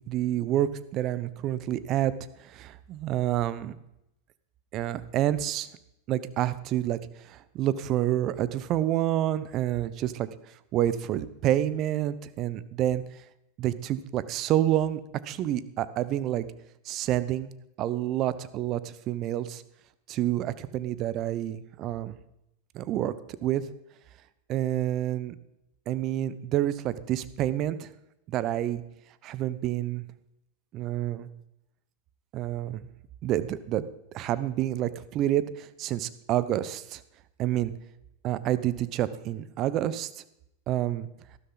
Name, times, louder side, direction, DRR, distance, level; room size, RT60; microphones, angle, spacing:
voice 1, 0.0-2.1 2.4-3.7 4.7-5.7 6.1-7.0 7.2-10.3 10.7-13.2 13.6-16.5 16.8-17.5 17.8-19.6 20.1-22.2 22.7-23.1 23.4-23.6 24.5-25.3 25.9-27.9 28.3-28.8 29.2-30.0 30.7-31.3 32.3-32.9 33.2-33.8 34.1-37.0 37.4-37.7 38.2-40.2 40.7-41.1, right 12 dB, 45° right, 15 dB, 0.9 m, -28 dB
13.5 x 12.5 x 4.0 m, 0.83 s
hypercardioid pair, 100°, 0 cm